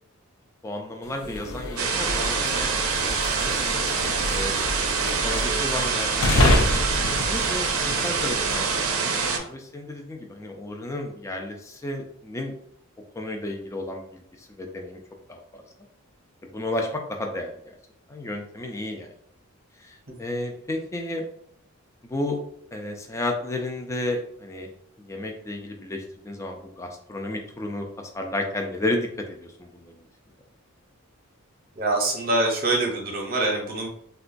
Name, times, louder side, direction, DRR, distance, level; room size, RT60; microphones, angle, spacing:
voice 1, 0.6-2.7 3.0-3.1 3.4-3.7 4.3-4.5 4.8-4.9 5.2-6.6 7.2-8.8 9.1-12.5 13.1-15.0 15.3-15.6 16.5-17.5 18.1-19.1 19.8-21.2 22.1-22.4 22.7-24.7 25.0-30.0, left 1 dB, 15° left, 2 dB, 0.3 m, -32 dB
sound 1, 1.1-8.9, left 1 dB, 85° left, 0.5 m, -28 dB
sound 2, 1.8-9.4, right 5 dB, 75° right, 0.5 m, -25 dB
voice 2, 31.8-33.9, right 2 dB, 40° right, 0 dB, 0.8 m, -25 dB
3.6 x 2.2 x 2.5 m, 0.69 s
head